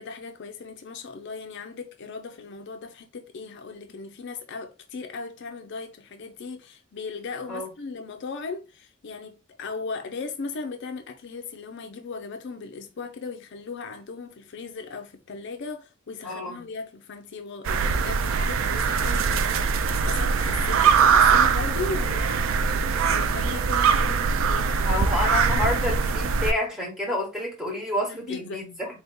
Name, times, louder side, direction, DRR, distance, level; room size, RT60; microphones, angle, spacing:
voice 1, 0.0-22.5 23.1-25.0 28.1-28.6, left 4 dB, 55° left, 0.4 m, -37 dB
voice 2, 16.2-16.6 24.8-28.9, left 1 dB, 5° right, 1.3 m, -29 dB
sound 1, 17.7-26.5, right 6 dB, 70° right, 0.4 m, -22 dB
3.8 x 2.8 x 3.5 m
head